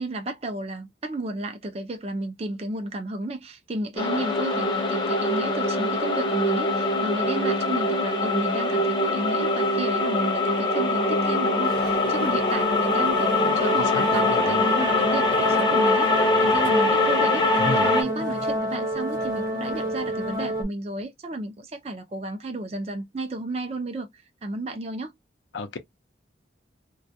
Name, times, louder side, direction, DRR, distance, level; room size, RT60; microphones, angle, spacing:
voice 1, 0.0-25.1, right 2 dB, 35° right, 0.4 m, -32 dB
sound 1, 4.0-18.0, left 2 dB, 25° left, 0.6 m, -23 dB
sound 2, 11.6-20.6, equal, 50° right, 1.0 m, -29 dB
voice 2, 13.8-14.6 17.6-18.0 25.5-25.8, left 3 dB, 80° left, 0.5 m, -32 dB
2.2 x 2.2 x 2.6 m
head